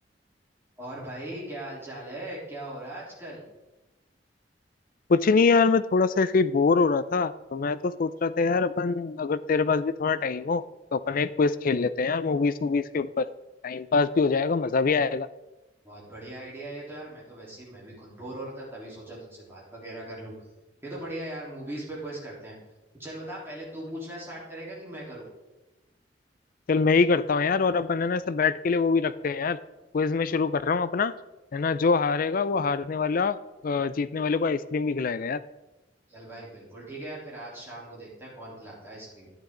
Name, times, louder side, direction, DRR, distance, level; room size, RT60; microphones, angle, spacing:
voice 1, 0.8-3.4 15.8-20.4 20.8-22.6 23.0-25.3 36.1-39.3, right 1 dB, 15° right, -6 dB, 3.6 m, -39 dB
voice 2, 5.1-10.6 10.9-13.3 13.6-15.3 26.7-29.6 29.9-31.1 31.5-33.4 33.6-35.4, left 4 dB, 50° left, 15 dB, 0.4 m, -24 dB
11.0 x 9.1 x 3.8 m, 1.0 s
head